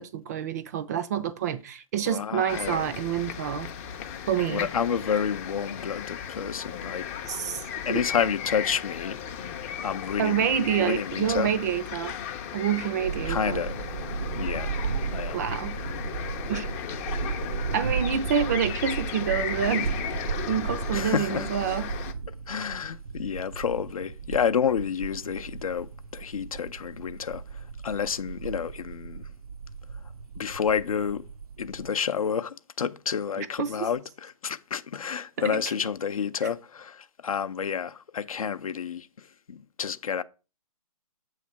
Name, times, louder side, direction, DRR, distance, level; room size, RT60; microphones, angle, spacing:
voice 1, 0.0-3.7 4.3-4.7 7.2-7.6 7.9-8.0 10.2-12.2 12.5-13.6 15.3-15.8 16.5-16.7 17.7-20.0 20.5-22.0 33.4-33.9 35.4-35.6, right 8 dB, 30° right, 0.4 m, -28 dB
voice 2, 2.1-2.9 4.5-7.1 7.9-9.2 9.8-10.5 10.8-11.5 13.3-13.8 14.3-14.7 15.1-15.4 20.9-21.5 22.5-29.3 30.4-31.2 31.6-40.2, left 7 dB, 70° left, 0.6 m, -30 dB
sound 1, 2.5-22.1, left 8 dB, 25° left, 0.5 m, -36 dB
sound 2, 13.0-31.9, right 5 dB, 80° right, 0.5 m, -35 dB
7.5 x 3.2 x 5.7 m
figure-of-eight pair, 135°, 19 cm